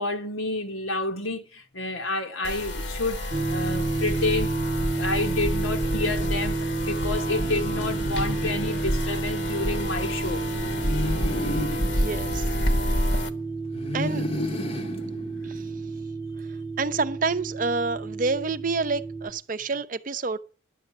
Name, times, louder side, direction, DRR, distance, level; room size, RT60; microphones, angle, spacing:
voice 1, 0.0-4.5 4.8-6.6 6.8-10.5 15.0-15.1, left 2 dB, 90° left, 1.7 m, -29 dB
sound 1, 2.4-13.3, left 1 dB, 60° left, 1.1 m, -29 dB
sound 2, 3.3-19.3, right 3 dB, 5° right, 0.8 m, -31 dB
sound 3, 7.3-9.4 10.5-13.2 13.7-16.0, left 1 dB, 30° left, 0.8 m, -33 dB
voice 2, 11.8-12.5 12.8-13.0 13.9-14.3 15.4-15.7 16.4-16.5 16.8-20.4, right 4 dB, 40° right, 0.5 m, -28 dB
11.0 x 7.6 x 7.2 m
head